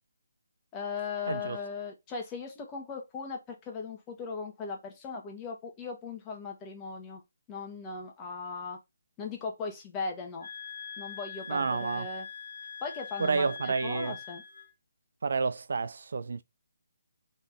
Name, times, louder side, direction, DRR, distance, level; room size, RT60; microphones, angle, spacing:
voice 1, 0.7-7.2 7.5-8.8 9.2-10.5 11.0-12.3 12.8-14.4, left 4 dB, 20° left, 1.3 m, -38 dB
sound 1, 10.4-14.7, left 7 dB, 65° left, 1.6 m, -43 dB
voice 2, 11.5-12.1 13.2-14.1 15.2-16.4, right 4 dB, 60° right, 0.4 m, -30 dB
4.0 x 3.5 x 3.6 m
figure-of-eight pair, 145°, 0 cm